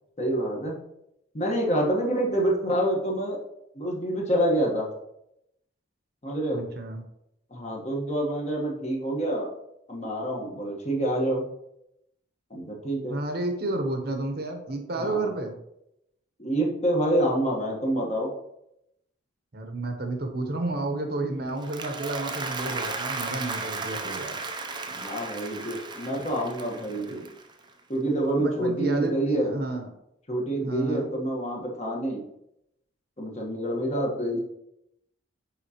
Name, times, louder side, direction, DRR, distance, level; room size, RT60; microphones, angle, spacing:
voice 1, 0.2-0.7 1.3-3.4 3.7-4.9 6.2-6.6 7.5-9.5 9.9-11.5 12.5-13.2 15.0-15.3 16.4-18.3 25.0-27.1 27.9-29.5 30.3-32.2 33.2-34.4, right 1 dB, 35° left, -1 dB, 1.3 m, -27 dB
voice 2, 6.5-7.0 13.1-15.6 19.5-24.4 26.2-26.3 27.0-27.3 28.4-29.9 30.6-31.1, right 2 dB, 50° right, 4 dB, 0.9 m, -31 dB
Applause, 21.5-27.8, right 3 dB, 25° right, 0.5 m, -35 dB
9.2 x 3.6 x 2.9 m, 0.80 s
head